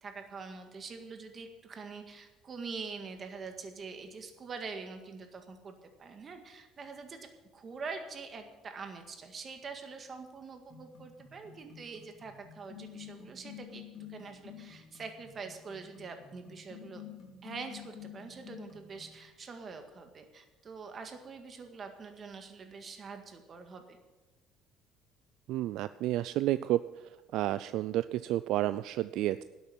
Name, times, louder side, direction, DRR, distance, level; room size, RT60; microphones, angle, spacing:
voice 1, 0.0-13.8 14.1-17.0 17.4-24.0, right 4 dB, 35° right, 6 dB, 1.9 m, -44 dB
sound 1, 10.7-19.2, left 9 dB, 45° left, 3.2 m, -50 dB
voice 2, 25.5-26.8 27.3-29.4, right 14 dB, 70° right, 14 dB, 0.3 m, -30 dB
11.5 x 8.1 x 8.6 m, 1.1 s
cardioid pair, 125°, 0 cm